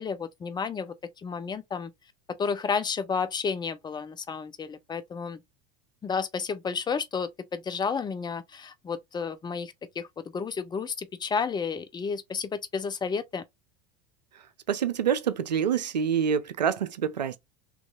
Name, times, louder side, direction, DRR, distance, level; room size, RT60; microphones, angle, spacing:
voice 1, 0.0-1.9 2.4-5.4 6.0-10.1 10.3-13.4, left 5 dB, 20° left, 0.5 m, -31 dB
voice 2, 14.7-17.4, right 8 dB, 90° right, 0.5 m, -26 dB
3.6 x 3.0 x 2.3 m
hypercardioid pair, 85°, 21 cm